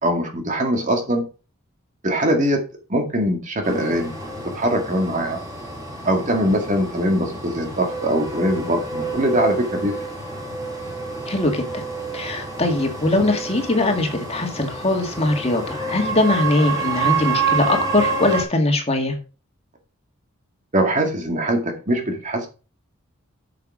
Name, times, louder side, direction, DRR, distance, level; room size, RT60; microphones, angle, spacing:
voice 1, 0.0-1.2 2.0-2.6 2.9-4.1 4.5-5.4 6.1-10.0 20.7-22.5, right 1 dB, 35° right, 2.1 m, -22 dB
sound 1, 3.6-18.4, right 4 dB, 20° right, 4.0 m, -28 dB
voice 2, 11.3-11.8 12.1-19.2, left 2 dB, 30° left, 1.9 m, -21 dB
8.2 x 6.9 x 4.9 m
head